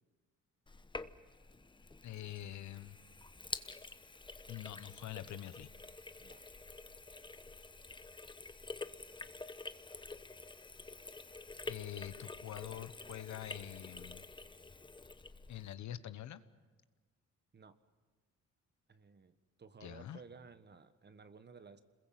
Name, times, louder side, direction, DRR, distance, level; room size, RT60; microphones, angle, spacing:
Sink (filling or washing), 0.7-15.7, left 3 dB, 15° left, 1.0 m, -48 dB
voice 1, 2.0-3.0 4.5-5.7 11.7-14.3 15.5-16.4 19.8-20.2, left 12 dB, 70° left, 13 dB, 1.2 m, -45 dB
voice 2, 11.5-11.9 17.5-17.8 18.9-21.8, right 5 dB, 35° right, 11 dB, 1.5 m, -56 dB
27.0 x 21.5 x 7.7 m, 1.3 s
cardioid pair, 90°, 30 cm